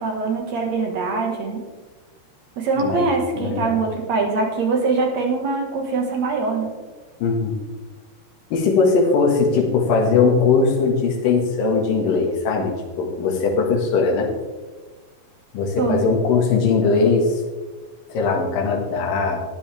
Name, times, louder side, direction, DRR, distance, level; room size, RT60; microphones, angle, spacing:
voice 1, 0.0-1.6 2.6-6.7 15.8-16.0, right 4 dB, 55° right, 1 dB, 2.4 m, -23 dB
voice 2, 3.4-3.8 7.2-7.6 8.5-14.3 15.5-17.4 18.1-19.4, left 4 dB, 65° left, 0 dB, 3.2 m, -20 dB
13.5 x 9.8 x 3.5 m, 1.3 s
omnidirectional pair, 4.6 m